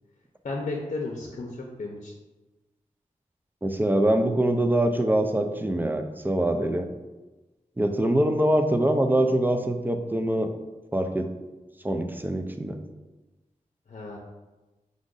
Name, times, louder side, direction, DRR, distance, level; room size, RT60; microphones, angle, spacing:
voice 1, 0.4-2.1 13.9-14.2, left 3 dB, 60° left, -1 dB, 0.7 m, -33 dB
voice 2, 3.6-6.9 7.8-10.5 10.9-11.3 11.8-12.8, right 1 dB, 15° right, 5 dB, 0.4 m, -24 dB
5.1 x 2.6 x 3.8 m, 1.1 s
wide cardioid pair, 65°, 14 cm